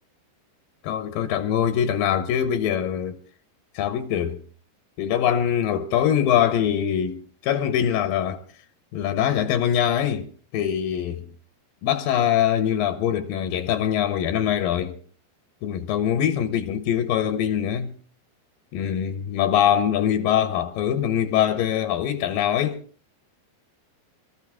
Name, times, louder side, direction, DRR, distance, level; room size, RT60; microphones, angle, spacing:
voice 1, 0.8-3.2 3.8-4.4 5.0-8.4 8.9-10.3 10.5-11.2 11.8-15.0 15.6-17.9 18.7-22.8, left 9 dB, 75° left, 2.1 m, -23 dB
24.0 x 14.0 x 3.6 m
omnidirectional pair, 5.3 m